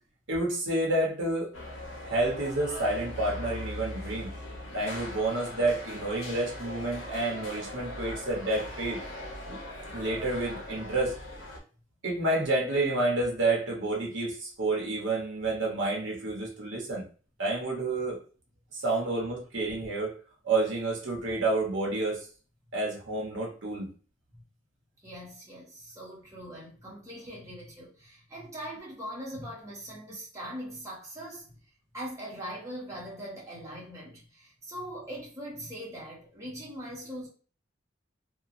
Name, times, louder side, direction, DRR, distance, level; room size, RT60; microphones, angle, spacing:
voice 1, 0.3-1.5 2.0-4.3 4.7-9.0 9.5-9.6 9.9-11.1 12.0-17.0 17.4-18.2 18.7-20.1 20.4-22.3 22.7-23.9, right 2 dB, 70° right, 1.0 m, -29 dB
sound 1, 1.5-11.6, left 1 dB, 70° left, 0.8 m, -40 dB
voice 2, 25.0-31.5 31.9-37.3, equal, 15° right, 0.9 m, -41 dB
2.9 x 2.3 x 2.5 m
head